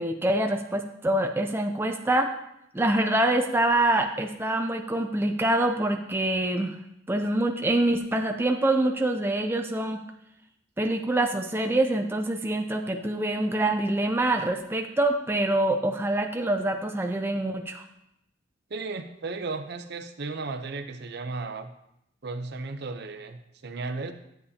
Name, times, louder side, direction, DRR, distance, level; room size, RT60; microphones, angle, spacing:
voice 1, 0.0-2.3 2.7-6.8 7.1-10.0 10.8-17.8, right 1 dB, 10° right, 4 dB, 0.4 m, -25 dB
voice 2, 18.7-21.7 22.2-24.1, right 3 dB, 55° right, 8 dB, 0.7 m, -35 dB
11.0 x 8.1 x 2.8 m, 0.81 s
head